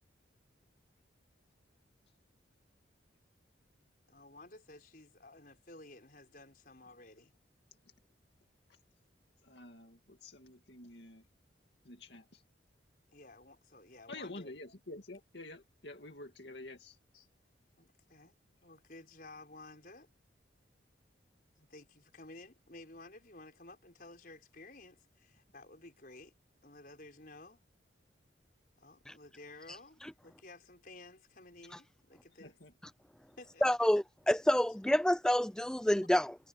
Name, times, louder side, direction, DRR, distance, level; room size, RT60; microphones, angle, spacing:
voice 1, 4.1-7.3 13.1-14.5 17.1-17.3 17.8-18.3 18.6-20.1 21.6-26.3 26.6-27.6 28.8-32.5 33.4-33.9, left 2 dB, 50° left, 5.2 m, -54 dB
voice 2, 9.4-11.3 11.8-12.4 14.1-17.0 32.4-32.7, left 2 dB, 65° left, 2.2 m, -49 dB
voice 3, 33.6-36.4, left 1 dB, 5° left, 0.3 m, -28 dB
head